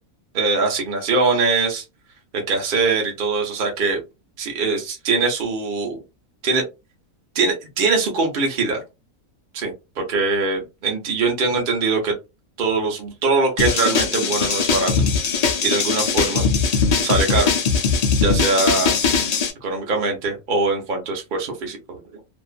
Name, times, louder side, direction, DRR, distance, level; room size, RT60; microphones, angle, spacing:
voice 1, 0.3-1.8 2.3-4.0 4.4-6.0 6.4-6.6 7.3-8.8 9.5-12.2 12.6-14.9 15.6-16.5 17.0-17.5 18.2-19.0 19.6-22.2, right 3 dB, 45° right, 0.8 m, -22 dB
sound 1, 13.6-19.5, left 5 dB, 80° left, 0.3 m, -20 dB
2.6 x 2.3 x 2.3 m
omnidirectional pair, 1.5 m